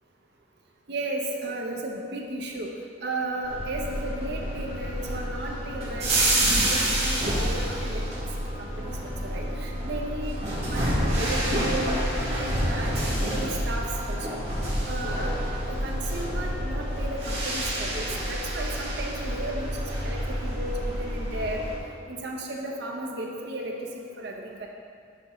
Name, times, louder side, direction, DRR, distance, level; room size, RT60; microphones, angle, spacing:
voice 1, 0.9-2.7 3.0-8.0 8.6-10.4 10.7-14.4 14.8-15.3 15.6-21.6 22.1-23.9 24.2-24.7, right 1 dB, 60° right, 0 dB, 0.7 m, -34 dB
sound 1, 3.4-21.8, right 1 dB, 35° right, 1.3 m, -28 dB
6.8 x 4.9 x 3.1 m, 2.3 s
head